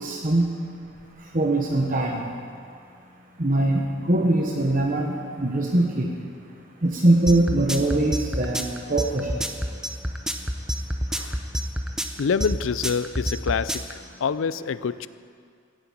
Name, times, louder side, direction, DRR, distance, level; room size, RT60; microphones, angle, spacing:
voice 1, 0.0-0.5 1.3-2.2 3.4-5.1 5.4-6.1 6.8-8.6 8.9-9.4, right 2 dB, 40° right, 1 dB, 1.1 m, -22 dB
sound 1, 7.3-13.9, equal, 5° right, 0.7 m, -27 dB
voice 2, 11.1-11.5 12.2-15.1, left 6 dB, 70° left, 16 dB, 0.4 m, -27 dB
15.5 x 9.7 x 8.6 m, 2.2 s
head